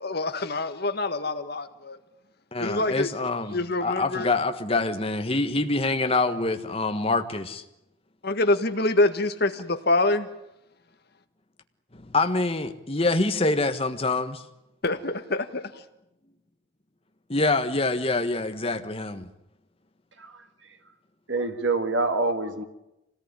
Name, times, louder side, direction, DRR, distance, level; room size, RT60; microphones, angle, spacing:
voice 1, 0.0-2.0 2.6-3.1 3.5-4.3 8.2-10.3 14.8-15.7, left 2 dB, 50° left, 1.6 m, -25 dB
voice 2, 2.5-7.6 11.9-14.4 17.3-19.3, left 2 dB, 30° left, 1.5 m, -25 dB
voice 3, 21.3-22.6, right 3 dB, 65° right, 1.9 m, -26 dB
25.0 x 18.0 x 9.9 m
head